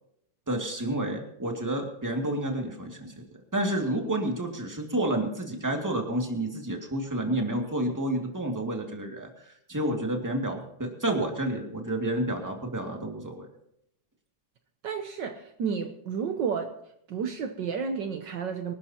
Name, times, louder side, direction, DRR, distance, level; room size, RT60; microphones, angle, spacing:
voice 1, 0.5-3.2 3.5-13.5, right 1 dB, 10° right, 2 dB, 2.1 m, -30 dB
voice 2, 14.8-16.7 17.1-18.7, right 6 dB, 65° right, 6 dB, 1.5 m, -31 dB
24.5 x 12.5 x 2.9 m, 0.76 s
omnidirectional pair, 2.2 m